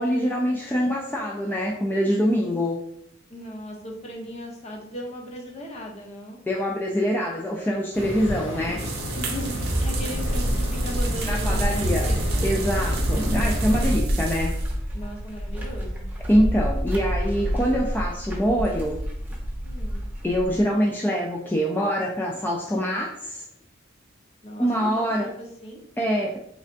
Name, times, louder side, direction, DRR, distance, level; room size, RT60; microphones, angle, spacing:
voice 1, 0.0-2.8 6.5-8.8 11.3-12.1 12.4-14.6 16.3-19.0 20.2-23.4 24.6-25.3 26.0-26.4, equal, 10° left, -1 dB, 0.3 m, -24 dB
voice 2, 3.3-6.4 9.2-12.5 13.0-13.4 14.9-16.1 19.6-20.0 24.4-24.7 24.9-25.8, equal, 35° left, 0 dB, 0.7 m, -37 dB
sound 1, 7.9-14.0, left 1 dB, 85° left, 1.2 m, -32 dB
sound 2, 8.8-14.8, right 2 dB, 55° right, 0.5 m, -31 dB
sound 3, 9.8-20.6, equal, 10° right, 0.7 m, -28 dB
3.3 x 3.2 x 2.6 m, 0.70 s
head